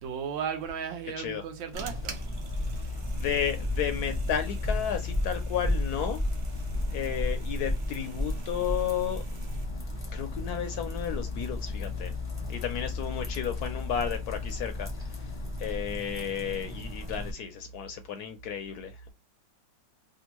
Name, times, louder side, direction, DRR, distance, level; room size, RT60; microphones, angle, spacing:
voice 1, 0.0-2.3, right 7 dB, 85° right, 1.5 m, -35 dB
sound 1, 1.2-9.6, right 6 dB, 65° right, 1.3 m, -49 dB
sound 2, 1.7-17.3, left 2 dB, 10° left, 0.7 m, -33 dB
voice 2, 2.9-6.2 6.9-9.2 10.1-12.1 12.5-15.3 15.6-19.1, left 8 dB, 75° left, 0.9 m, -33 dB
3.5 x 2.3 x 2.9 m
omnidirectional pair, 2.0 m